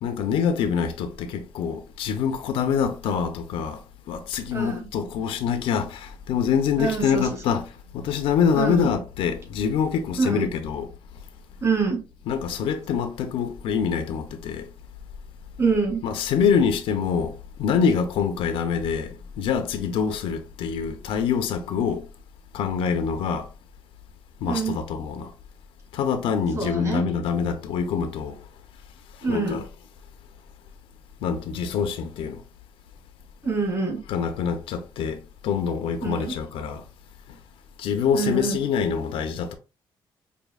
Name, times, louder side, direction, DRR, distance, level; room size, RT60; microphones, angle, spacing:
voice 1, 0.0-3.8 4.1-7.6 7.9-10.9 12.3-14.7 16.0-22.1 22.5-23.5 24.4-25.3 25.9-28.4 29.3-29.6 31.2-32.4 34.1-36.8 37.8-39.5, left 7 dB, 85° left, 0.7 m, -25 dB
voice 2, 4.5-4.9 6.8-7.5 8.6-8.8 10.2-10.5 11.6-12.0 15.6-16.0 24.5-24.7 26.5-27.0 29.2-29.6 33.4-34.0 36.0-36.3 38.1-38.6, right 4 dB, 35° right, 1.9 m, -25 dB
5.2 x 2.7 x 2.3 m
cardioid pair, 130°, 9 cm